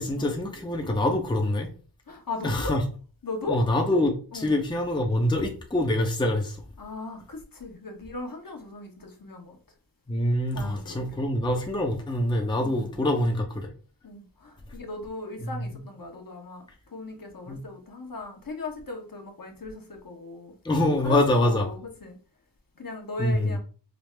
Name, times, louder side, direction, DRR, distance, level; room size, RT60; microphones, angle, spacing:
voice 1, 0.0-1.7 2.4-2.8 3.5-6.6 10.1-13.7 15.4-15.7 17.5-17.6 20.6-21.7 23.2-23.6, left 1 dB, 10° left, 0.7 m, -25 dB
voice 2, 2.1-2.8 3.2-3.6 4.3-4.6 6.8-9.6 10.5-11.2 12.6-13.0 14.0-22.2 22.8-23.6, left 3 dB, 50° left, 1.1 m, -38 dB
5.2 x 2.0 x 3.3 m
wide cardioid pair, 55°, 44 cm